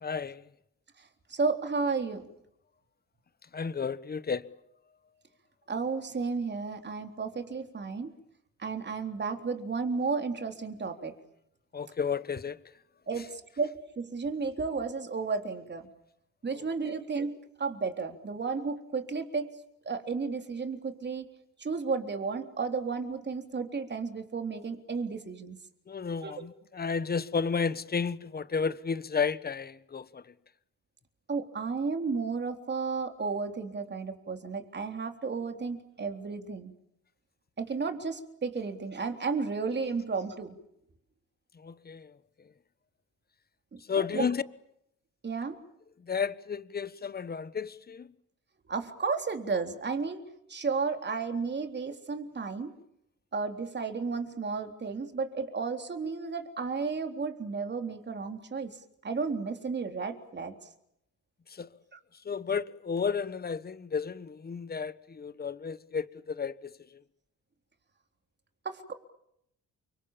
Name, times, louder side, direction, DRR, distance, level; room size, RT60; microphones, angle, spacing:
voice 1, 0.0-0.5 3.5-4.5 11.7-12.6 13.2-13.3 16.6-16.7 25.9-30.3 41.5-42.2 43.9-44.4 46.0-48.1 61.5-61.7 62.2-67.0, left 6 dB, 30° left, 1.3 m, -32 dB
voice 2, 1.0-2.3 5.7-8.1 8.6-11.1 13.1-15.9 16.4-19.5 19.9-21.3 21.6-25.6 26.2-26.3 31.3-36.7 37.6-40.6 43.7-44.2 45.2-45.6 48.7-50.2 50.5-52.7 53.3-58.8 59.0-60.6 68.7-68.9, right 4 dB, 35° right, 3.7 m, -33 dB
29.5 x 25.0 x 7.4 m
cardioid pair, 90°, 30 cm